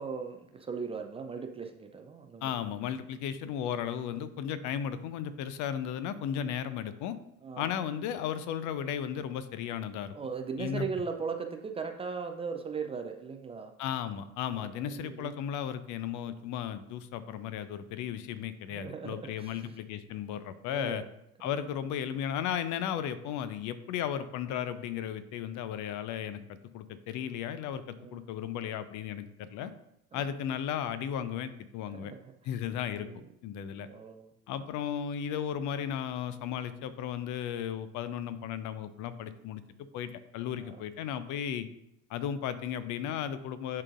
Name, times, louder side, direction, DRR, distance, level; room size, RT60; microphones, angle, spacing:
voice 1, 0.0-2.5 7.4-7.7 10.1-13.7 14.5-15.3 18.7-19.6 20.7-21.0 21.4-21.6 28.0-28.2 30.1-30.2 33.0-33.2 33.9-34.3 40.6-40.8, right 5 dB, 15° right, 5 dB, 0.3 m, -38 dB
voice 2, 2.4-7.2 7.6-10.1 10.6-10.9 13.8-21.0 21.4-29.7 30.1-32.1 32.4-33.1 33.4-33.9 34.5-39.6 39.9-41.7 42.1-43.8, left 9 dB, 45° left, 13 dB, 0.6 m, -35 dB
10.5 x 3.8 x 2.5 m, 0.81 s
figure-of-eight pair, 70°, 43 cm